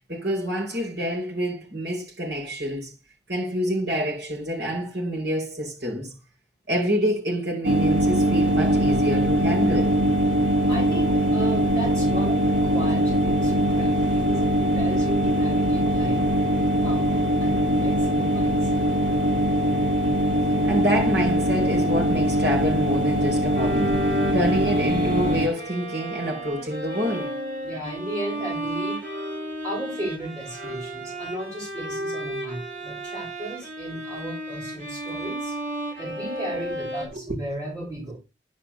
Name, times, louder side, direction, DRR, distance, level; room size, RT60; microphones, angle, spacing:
voice 1, 0.1-2.9 3.3-6.1 6.7-10.0 20.2-20.3 20.6-24.0 24.3-27.3 37.1-37.4, equal, 60° right, 4.8 m, -27 dB
sound 1, 7.6-25.5, right 1 dB, 85° right, 1.6 m, -22 dB
voice 2, 10.7-18.8 27.6-29.0 29.6-35.6 36.0-38.2, right 1 dB, 20° right, 3.2 m, -35 dB
Bowed string instrument, 23.5-37.1, right 1 dB, 45° right, 3.0 m, -33 dB
10.0 x 5.1 x 6.9 m
head